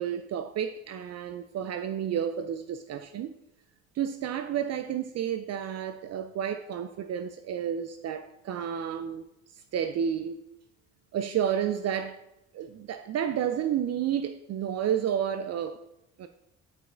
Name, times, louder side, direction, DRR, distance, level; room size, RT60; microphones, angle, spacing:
voice 1, 0.0-3.3 4.0-9.3 9.7-10.4 11.1-12.2 12.5-15.8 16.2-16.3, right 9 dB, 60° right, 0.5 m, -31 dB
8.1 x 5.4 x 3.8 m
cardioid pair, 90°, 30 cm